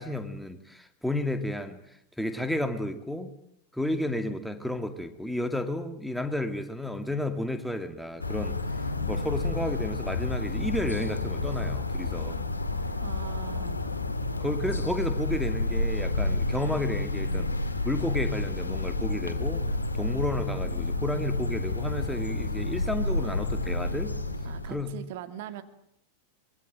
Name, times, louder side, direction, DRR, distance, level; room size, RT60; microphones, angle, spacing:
voice 1, 0.0-1.8 2.2-3.3 3.7-8.6 9.1-12.4 14.4-17.5 17.8-19.6 19.9-24.1 24.7-25.0, left 1 dB, ahead, 8 dB, 2.3 m, -32 dB
sound 1, 8.2-24.8, left 2 dB, 80° left, 2.2 m, -30 dB
voice 2, 13.0-13.8 24.5-25.6, right 10 dB, 50° right, 9 dB, 2.4 m, -40 dB
25.0 x 23.0 x 9.1 m, 0.71 s
figure-of-eight pair, 90°, 0 cm